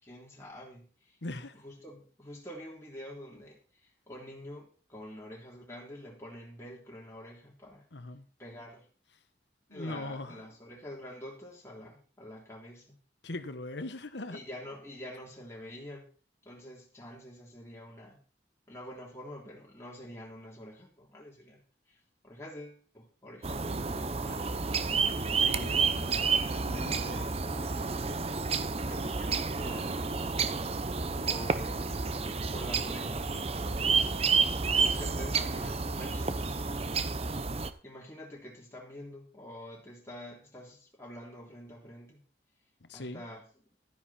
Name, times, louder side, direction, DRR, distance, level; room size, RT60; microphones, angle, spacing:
voice 1, 0.0-7.8 8.4-8.9 9.7-13.0 14.3-16.0 16.4-18.2 18.7-24.6 25.2-25.7 26.7-28.3 28.9-30.2 31.2-34.2 34.7-37.0 37.8-42.2 42.9-43.4, equal, 15° left, -4 dB, 3.3 m, -47 dB
voice 2, 1.2-1.5 7.9-8.3 9.7-10.4 13.2-14.4 25.4-27.3 42.8-43.2, left 2 dB, 80° left, 11 dB, 1.3 m, -41 dB
sound 1, 23.4-37.7, right 4 dB, 35° right, 0.8 m, -30 dB
12.5 x 10.0 x 4.3 m, 0.38 s
head